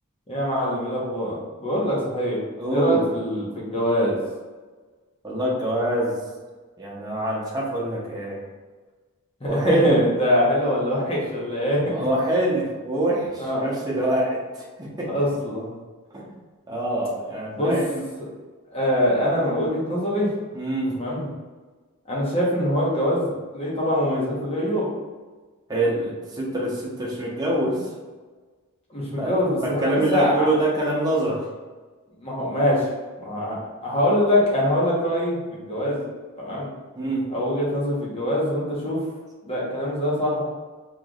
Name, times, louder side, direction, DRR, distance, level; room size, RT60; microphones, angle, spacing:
voice 1, 0.3-2.4 2.7-4.2 9.4-12.0 13.4-13.6 15.1-15.8 17.6-17.7 18.2-18.3 18.7-20.3 21.0-21.3 22.1-24.9 28.9-30.5 32.2-32.9 33.2-36.0 36.4-36.7 37.3-39.0 39.4-40.4, equal, 25° left, -5 dB, 1.1 m, -23 dB
voice 2, 2.6-3.1 5.2-6.2 6.8-8.4 9.4-10.0 11.9-15.1 16.1-16.3 16.7-18.0 20.5-21.0 25.7-27.9 29.2-31.4 36.9-37.2, right 1 dB, 20° right, -5 dB, 1.0 m, -25 dB
4.5 x 3.1 x 2.4 m, 1.3 s
head